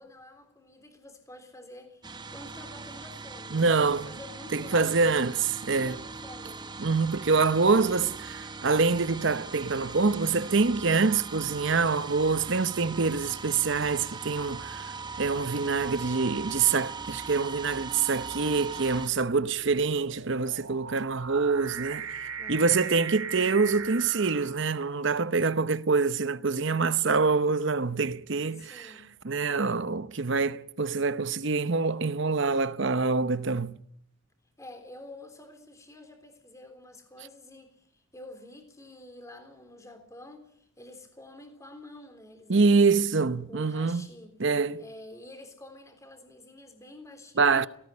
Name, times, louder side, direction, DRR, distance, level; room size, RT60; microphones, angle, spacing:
voice 1, 0.0-5.3 5.7-6.8 7.6-8.1 22.4-22.9 28.5-29.1 34.6-43.1 43.5-44.4 44.8-47.7, left 1 dB, 15° left, 3.5 m, -49 dB
sound 1, 2.0-19.1, right 4 dB, 20° right, 1.0 m, -40 dB
voice 2, 3.5-4.1 4.5-6.0 6.8-8.1 8.4-28.9 29.2-33.8 42.5-44.1 44.4-44.8 47.4-47.7, right 4 dB, 60° right, 0.8 m, -25 dB
sound 2, 17.8-25.2, right 6 dB, 85° right, 2.0 m, -40 dB
18.5 x 18.0 x 9.7 m
head